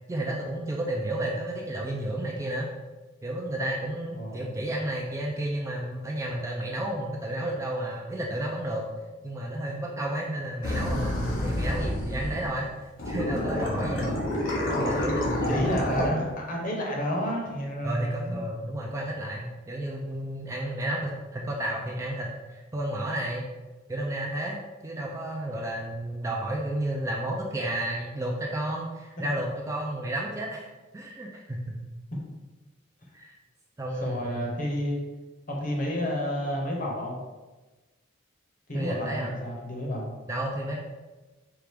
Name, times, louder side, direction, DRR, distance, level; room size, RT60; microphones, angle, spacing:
voice 1, 0.1-2.7 3.2-8.9 9.2-12.7 13.1-14.2 14.7-16.3 17.8-23.5 23.9-30.7 30.9-31.8 33.1-33.3 33.8-34.5 38.7-39.3 40.3-40.8, right 1 dB, 15° right, -2 dB, 0.4 m, -32 dB
voice 2, 4.0-4.5 15.5-18.5 32.2-32.3 34.0-35.0 35.5-37.2 38.7-40.2, equal, 40° left, -1 dB, 0.8 m, -31 dB
sound 1, 10.6-12.6 13.0-16.1, left 1 dB, 75° left, 0.9 m, -28 dB
4.5 x 2.4 x 3.4 m, 1.2 s
head